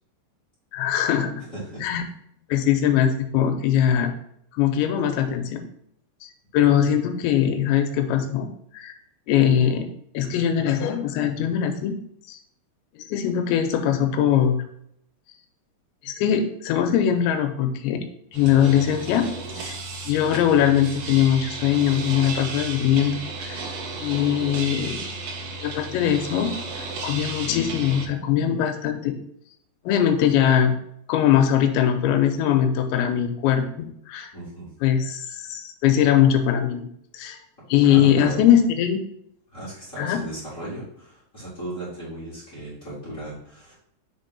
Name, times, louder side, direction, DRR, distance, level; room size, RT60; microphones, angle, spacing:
voice 1, 0.7-1.4 1.8-2.1 2.5-4.1 4.5-5.6 6.5-8.5 8.7-9.0 9.3-9.9 10.1-12.0 12.3-12.4 13.0-14.6 16.0-18.0 18.3-19.3 19.5-19.8 20.1-23.7 24.0-25.1 25.6-29.2 29.9-30.8 31.1-34.3 34.8-36.9 37.1-37.4 37.7-39.0 40.0-40.2, left 9 dB, 85° left, 6 dB, 2.9 m, -21 dB
voice 2, 1.5-1.8 6.6-6.7 34.3-34.7 37.9-38.5 39.5-43.7, right 1 dB, 25° left, -10 dB, 1.7 m, -36 dB
sound 1, 18.3-28.1, right 3 dB, 70° right, 2.6 m, -34 dB
6.5 x 4.4 x 4.0 m, 0.69 s
omnidirectional pair, 5.3 m